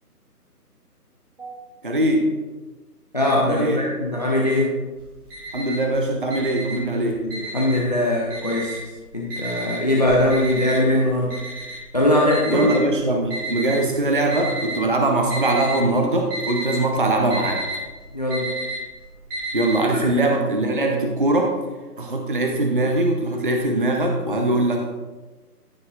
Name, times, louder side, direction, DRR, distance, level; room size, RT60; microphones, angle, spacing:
voice 1, 1.8-2.3 3.4-3.9 5.5-7.2 12.4-17.6 19.5-21.5 22.0-24.9, right 2 dB, 35° right, 2 dB, 0.6 m, -21 dB
voice 2, 3.1-4.7 7.2-8.8 9.1-11.4 11.9-12.7 18.1-18.5 19.9-20.3, left 1 dB, 25° left, -3 dB, 0.7 m, -21 dB
Alarm, 5.0-5.9 6.3-7.9 8.3-8.9 9.3-13.8 14.3-14.9 15.2-15.8 16.1-19.8, right 2 dB, 15° right, 2.7 m, -31 dB
14.0 x 6.5 x 2.4 m, 1.2 s
figure-of-eight pair, 155°, 48 cm